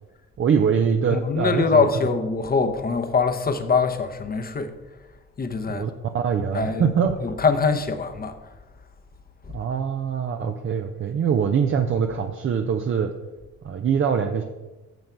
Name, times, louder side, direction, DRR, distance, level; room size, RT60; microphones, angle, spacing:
voice 1, 0.4-1.8 5.7-5.9 6.1-7.1 9.5-13.1 13.6-14.4, right 7 dB, 45° right, 0.7 m, -23 dB
voice 2, 1.1-4.8 5.4-5.8 6.5-6.9 7.2-8.6 9.4-9.5, left 5 dB, 30° left, 0.9 m, -23 dB
9.4 x 6.6 x 4.5 m
cardioid pair, 90°, 30 cm